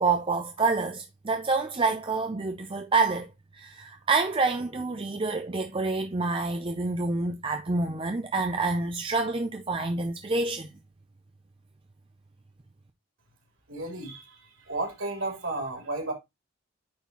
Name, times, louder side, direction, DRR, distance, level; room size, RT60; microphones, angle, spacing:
voice 1, 0.0-10.7, right 3 dB, 25° right, 0.5 m, -27 dB
voice 2, 13.7-16.1, right 2 dB, 60° right, 3.0 m, -33 dB
9.3 x 4.3 x 2.9 m
head